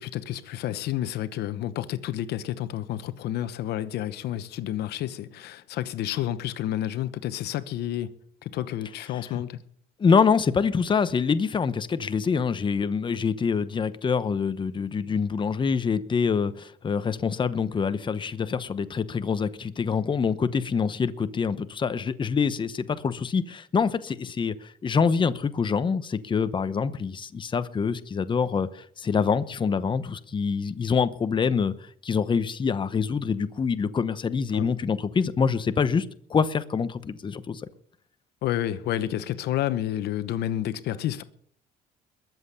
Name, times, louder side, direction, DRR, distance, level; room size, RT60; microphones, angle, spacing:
voice 1, 0.0-8.1 8.4-9.6 34.5-34.7 38.4-41.2, left 12 dB, 75° left, 1.0 m, -30 dB
voice 2, 9.1-9.4 10.0-31.7 32.0-37.6, left 6 dB, 30° left, 0.9 m, -25 dB
21.5 x 7.6 x 6.8 m
cardioid pair, 110°, 17 cm